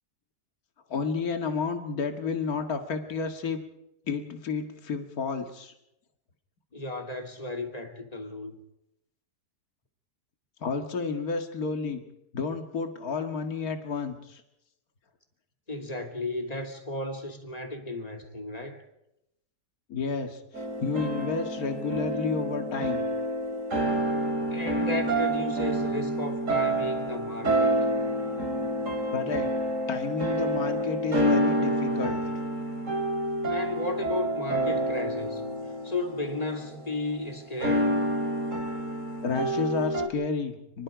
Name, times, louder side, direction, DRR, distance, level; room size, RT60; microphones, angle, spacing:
voice 1, 0.9-3.6 4.1-5.7 10.6-12.0 12.3-14.4 19.9-23.0 29.1-29.5 29.9-32.2 39.2-40.8, left 4 dB, 60° left, 2.3 m, -31 dB
voice 2, 6.7-8.6 15.7-18.8 24.5-27.7 33.5-35.5 35.8-38.0, left 2 dB, 25° left, 2.8 m, -34 dB
sound 1, 20.5-36.9 37.6-40.1, right 1 dB, 50° right, 3.8 m, -28 dB
29.0 x 21.5 x 5.1 m
omnidirectional pair, 1.7 m